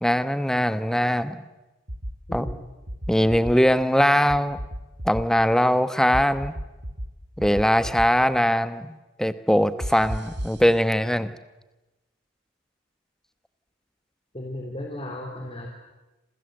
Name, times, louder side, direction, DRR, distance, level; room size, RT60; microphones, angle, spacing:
voice 1, 0.0-1.4 2.3-2.5 3.1-4.6 5.0-6.5 7.4-8.9 9.2-11.3, equal, 5° left, 12 dB, 1.1 m, -21 dB
sound 1, 1.9-2.5 2.9-3.5 4.3-5.2 6.1-7.1 7.4-8.1 9.8-10.6, equal, 60° right, 3.3 m, -32 dB
voice 2, 2.3-2.6 14.3-15.7, left 1 dB, 30° left, 1 dB, 3.3 m, -35 dB
27.5 x 27.0 x 7.8 m, 1.1 s
head